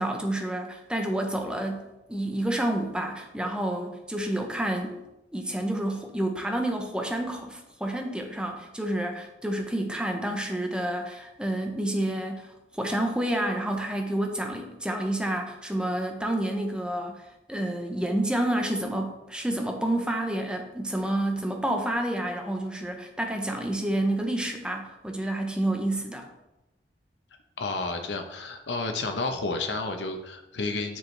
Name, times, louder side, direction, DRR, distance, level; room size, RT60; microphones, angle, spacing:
voice 1, 0.0-5.0 5.3-12.5 12.7-17.2 17.5-26.3, right 1 dB, 5° right, 3 dB, 0.7 m, -29 dB
voice 2, 27.6-31.0, left 3 dB, 80° left, 5 dB, 0.8 m, -31 dB
7.1 x 4.8 x 3.2 m, 0.94 s
head